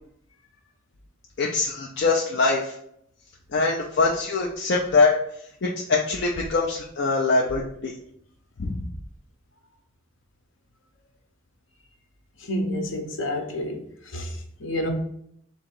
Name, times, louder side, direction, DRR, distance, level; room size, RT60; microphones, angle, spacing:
voice 1, 1.4-2.8 3.5-5.1 5.6-7.9 8.6-8.9, left 3 dB, 60° left, 0.5 m, -23 dB
voice 2, 12.4-14.9, left 1 dB, 80° left, 0.9 m, -30 dB
3.7 x 2.9 x 4.4 m
head